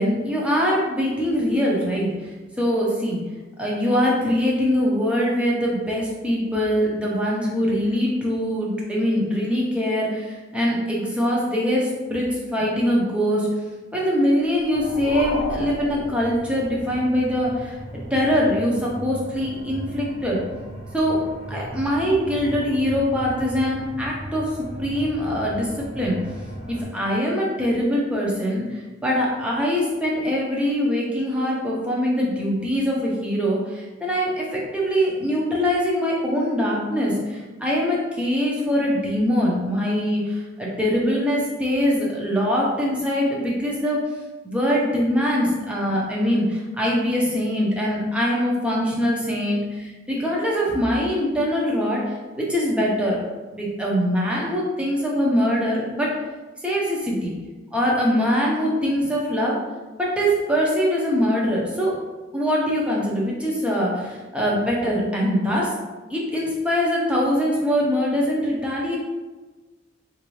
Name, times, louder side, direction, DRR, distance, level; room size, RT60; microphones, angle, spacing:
voice 1, 0.0-3.2 3.6-13.5 13.9-17.8 18.1-20.4 20.9-21.2 21.5-25.7 25.9-26.2 26.7-44.0 44.4-53.2 53.5-56.1 56.6-57.3 57.7-59.6 60.0-61.9 62.3-65.7 66.1-69.0, equal, 5° right, -4 dB, 0.7 m, -23 dB
sound 1, 14.3-17.0, left 2 dB, 75° left, 0.5 m, -33 dB
sound 2, 14.7-26.8, right 1 dB, 45° left, 1.0 m, -37 dB
3.9 x 2.6 x 3.1 m, 1.2 s
head